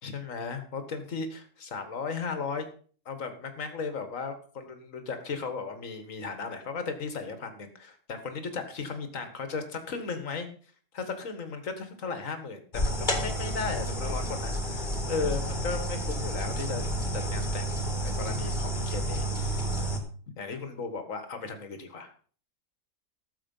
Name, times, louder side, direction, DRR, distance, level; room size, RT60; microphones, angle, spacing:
voice 1, 0.0-2.7 3.1-10.5 10.9-16.8 17.1-17.7 18.0-19.7 20.4-22.1, left 4 dB, 60° left, 8 dB, 2.0 m, -36 dB
sound 1, 12.7-20.0, right 1 dB, 30° left, 2.1 m, -30 dB
13.0 x 7.3 x 5.4 m, 0.43 s
omnidirectional pair, 1.5 m